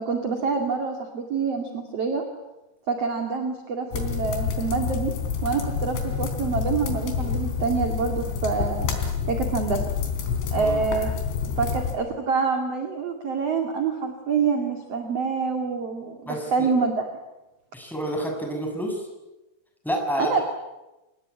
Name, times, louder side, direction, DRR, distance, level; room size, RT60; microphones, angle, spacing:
voice 1, 0.0-2.2 2.9-5.1 5.4-8.9 9.3-9.8 10.5-11.1 11.6-17.0 20.2-20.4, right 5 dB, 45° right, 4 dB, 2.3 m, -26 dB
sound 1, 3.9-12.0, left 6 dB, 65° left, 5.7 m, -28 dB
voice 2, 16.2-16.7 17.7-19.1 19.8-20.4, equal, ahead, 2 dB, 6.5 m, -29 dB
27.0 x 20.0 x 9.6 m, 1.0 s
omnidirectional pair, 5.9 m